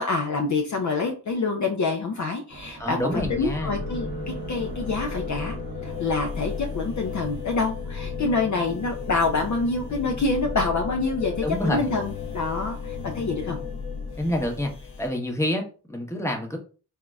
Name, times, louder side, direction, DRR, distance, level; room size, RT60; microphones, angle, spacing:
voice 1, 0.0-5.6 5.8-13.6, left 3 dB, 45° left, 2 dB, 0.5 m, -26 dB
sound 1, 2.5-15.1, equal, 25° right, 1.0 m, -44 dB
voice 2, 2.8-3.8 11.4-11.9 14.2-14.7 15.0-16.6, left 1 dB, 5° left, 2 dB, 0.8 m, -27 dB
sound 2, 3.1-15.1, left 5 dB, 65° left, 1.1 m, -34 dB
3.6 x 2.0 x 2.3 m, 0.37 s
cardioid pair, 50°, 41 cm